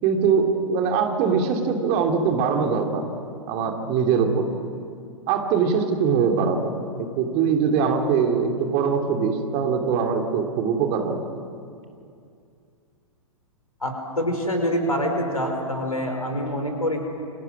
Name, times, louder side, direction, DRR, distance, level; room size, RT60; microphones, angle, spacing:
voice 1, 0.0-3.0 3.5-4.5 5.3-6.7 7.0-11.2, right 6 dB, 35° right, 3 dB, 3.0 m, -22 dB
voice 2, 13.8-17.1, equal, 85° left, 4 dB, 4.8 m, -25 dB
28.5 x 25.5 x 6.1 m, 2.4 s
figure-of-eight pair, 105°, 18 cm